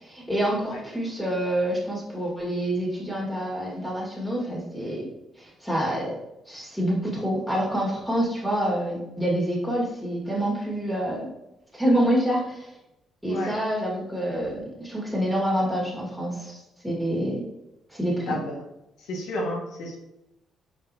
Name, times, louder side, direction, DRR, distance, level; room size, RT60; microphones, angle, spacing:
voice 1, 0.0-5.1 5.4-6.1 6.5-11.3 11.7-12.7 13.2-16.6 16.8-17.4 17.9-18.3, right 1 dB, 5° left, -5 dB, 1.6 m, -27 dB
voice 2, 18.3-18.6 19.0-20.0, left 1 dB, 85° left, 0 dB, 1.0 m, -31 dB
4.7 x 4.1 x 2.7 m, 0.89 s
cardioid pair, 90°, 0 cm